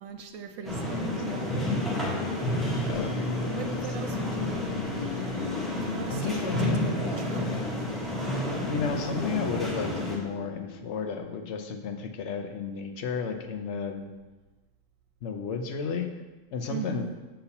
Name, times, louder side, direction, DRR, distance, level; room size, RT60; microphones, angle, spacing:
voice 1, 0.0-1.8 3.5-5.0 5.9-7.8 16.7-17.2, right 6 dB, 85° right, 6 dB, 1.0 m, -40 dB
sound 1, 0.6-10.2, left 1 dB, ahead, 1.0 m, -30 dB
sound 2, 2.5-11.2, left 3 dB, 50° left, 0.5 m, -38 dB
voice 2, 2.9-3.7 6.1-7.2 8.7-14.1 15.2-16.1 16.5-17.1, left 5 dB, 65° left, 5 dB, 0.9 m, -33 dB
6.7 x 5.8 x 2.8 m, 1.2 s
omnidirectional pair, 1.3 m